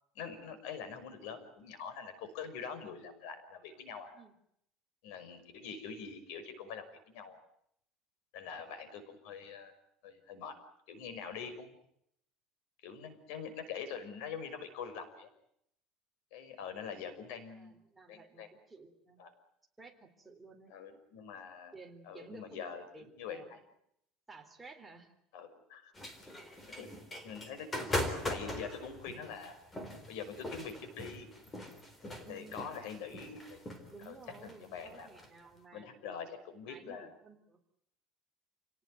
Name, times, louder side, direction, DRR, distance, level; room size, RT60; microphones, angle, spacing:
voice 1, 0.1-4.2 5.0-7.4 8.3-9.8 10.0-10.6 10.9-11.8 12.8-15.3 16.3-17.7 18.1-18.5 19.2-19.3 20.7-21.7 22.0-23.6 25.3-25.9 26.8-26.9 27.2-28.0 28.3-29.6 30.1-31.3 32.0-34.2 34.4-35.1 35.7-37.1, left 6 dB, 85° left, 11 dB, 5.8 m, -44 dB
voice 2, 17.5-19.2 19.8-20.7 21.7-22.6 22.9-23.5 24.3-25.2 32.2-32.6 33.9-36.0 36.7-37.6, right 4 dB, 10° right, 3 dB, 3.5 m, -54 dB
sound 1, 25.9-35.3, left 1 dB, 15° left, 3.9 m, -41 dB
29.0 x 18.5 x 9.3 m, 0.75 s
cardioid pair, 165°, 0 cm